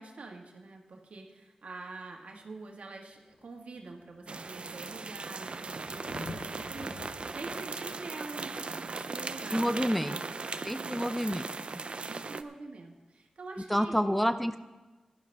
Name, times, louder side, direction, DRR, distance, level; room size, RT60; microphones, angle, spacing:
voice 1, 0.0-10.3 10.7-11.1 12.1-14.1, right 3 dB, 75° right, 1 dB, 1.7 m, -46 dB
Thunder, 1.8-1.9 2.8-2.9 3.1-10.5 12.1-12.2, left 4 dB, 85° left, 0.8 m, -50 dB
sound 1, 4.3-12.4, right 4 dB, 55° right, 0.6 m, -38 dB
voice 2, 9.5-10.2 10.6-11.4 11.7-11.8 13.7-14.6, equal, 5° left, 10 dB, 0.5 m, -28 dB
16.5 x 11.5 x 3.5 m, 1.1 s
wide cardioid pair, 70°, 2 cm